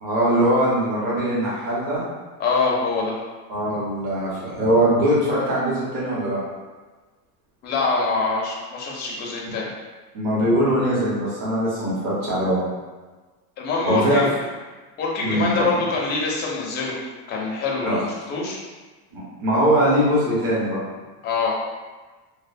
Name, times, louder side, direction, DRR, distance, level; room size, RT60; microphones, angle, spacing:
voice 1, 0.0-2.0 3.5-6.4 10.1-12.6 13.9-14.2 15.2-15.7 17.8-18.0 19.1-20.8, right 1 dB, 40° right, -7 dB, 1.1 m, -21 dB
voice 2, 2.4-3.2 7.6-9.7 13.6-14.3 15.0-17.0 17.3-18.6 21.2-21.6, left 4 dB, 25° left, -3 dB, 0.4 m, -24 dB
2.9 x 2.0 x 2.5 m, 1.3 s
supercardioid pair, 125°, 47 cm